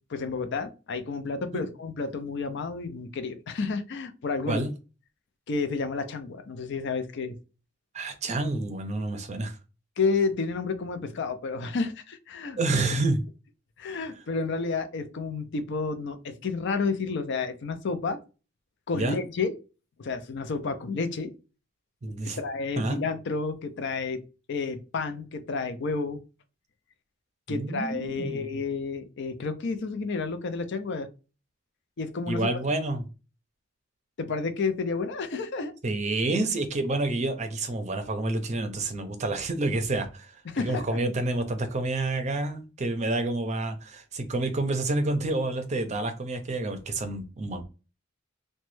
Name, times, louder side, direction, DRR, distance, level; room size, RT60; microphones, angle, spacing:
voice 1, 0.1-4.7 5.5-7.3 10.0-12.6 12.9-13.0 13.8-18.2 18.9-19.5 20.0-21.3 22.4-24.2 24.5-26.2 27.5-31.1 32.0-32.5 34.2-35.7 40.5-41.0, left 4 dB, 60° left, 9 dB, 0.5 m, -30 dB
voice 2, 7.9-9.5 12.6-13.2 18.9-19.2 22.0-22.4 22.8-23.0 27.5-28.5 32.3-33.0 35.8-47.6, right 2 dB, 35° right, 8 dB, 0.5 m, -28 dB
3.0 x 2.2 x 3.1 m, 0.32 s
head